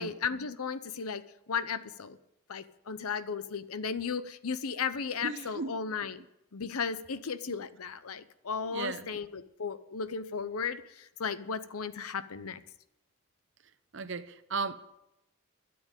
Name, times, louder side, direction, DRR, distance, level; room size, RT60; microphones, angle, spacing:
voice 1, 0.0-2.2 2.5-6.2 6.5-12.6, left 6 dB, 85° left, 0.7 m, -35 dB
voice 2, 5.2-5.8 8.6-9.1 13.9-14.8, right 4 dB, 55° right, 0.7 m, -36 dB
12.5 x 7.8 x 8.9 m
head